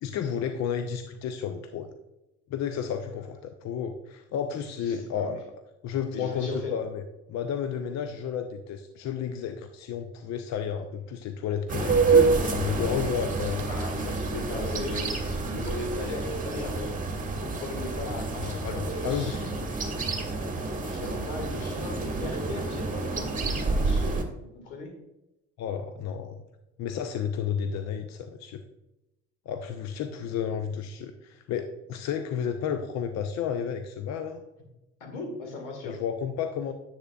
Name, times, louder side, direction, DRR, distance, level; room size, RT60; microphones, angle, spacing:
voice 1, 0.0-1.9 2.5-5.4 5.8-7.0 7.3-13.7 18.4-19.7 25.6-26.4 26.8-28.6 29.5-34.4 35.8-36.7, left 8 dB, 50° left, 7 dB, 0.7 m, -32 dB
voice 2, 4.8-5.4 6.1-6.7 13.7-16.9 17.4-19.5 20.8-24.9 35.0-36.0, left 2 dB, 75° left, 3 dB, 2.0 m, -38 dB
sound 1, 11.7-24.2, right 4 dB, 20° right, 1.6 m, -28 dB
9.9 x 8.3 x 2.4 m, 0.94 s
figure-of-eight pair, 60°, 36 cm